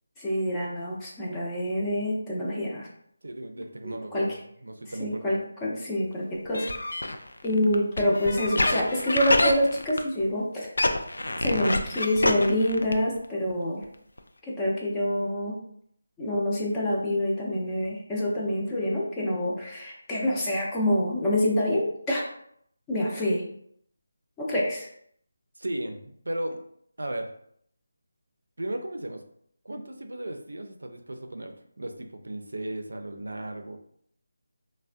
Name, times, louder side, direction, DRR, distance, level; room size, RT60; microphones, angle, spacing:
voice 1, 0.2-2.9 3.8-4.3 5.0-7.0 7.4-10.7 11.4-13.8 14.4-15.5 16.2-22.2 22.9-23.4 24.4-24.9, left 1 dB, 15° left, -5 dB, 0.6 m, -27 dB
voice 2, 3.2-4.3 4.6-5.4 25.6-26.6 27.0-27.3 28.6-29.2 29.6-33.8, right 1 dB, 80° right, 5 dB, 0.4 m, -35 dB
sound 1, 6.5-10.3 10.6-13.2 13.5-13.6 13.8-13.9 14.2-14.3, left 2 dB, 80° left, 0.4 m, -26 dB
3.4 x 2.1 x 2.5 m, 0.68 s
figure-of-eight pair, 165°, 0 cm